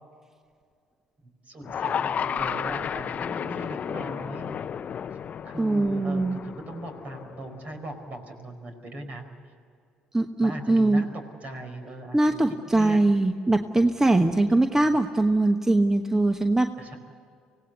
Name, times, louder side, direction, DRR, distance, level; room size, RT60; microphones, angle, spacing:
voice 1, 1.4-4.5 5.4-9.3 10.4-12.4 12.7-13.0 16.8-17.0, right 1 dB, 45° right, 6 dB, 4.8 m, -39 dB
sound 1, 1.6-7.9, left 8 dB, 45° left, 0.6 m, -32 dB
voice 2, 5.6-6.4 10.1-11.0 12.1-16.7, right 2 dB, 15° right, 7 dB, 1.2 m, -22 dB
25.0 x 18.0 x 8.2 m, 2.3 s
hypercardioid pair, 65°, 3 cm